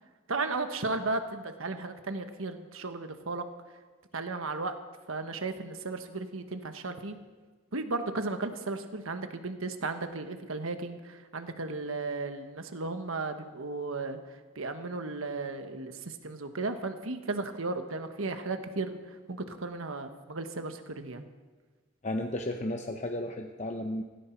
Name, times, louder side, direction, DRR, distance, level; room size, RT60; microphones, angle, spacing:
voice 1, 0.3-3.4 4.1-4.7 5.1-7.2 7.7-21.2, right 3 dB, 70° right, 7 dB, 1.3 m, -35 dB
voice 2, 22.0-24.0, left 1 dB, 35° left, 4 dB, 0.8 m, -33 dB
16.5 x 16.0 x 4.6 m, 1.4 s
head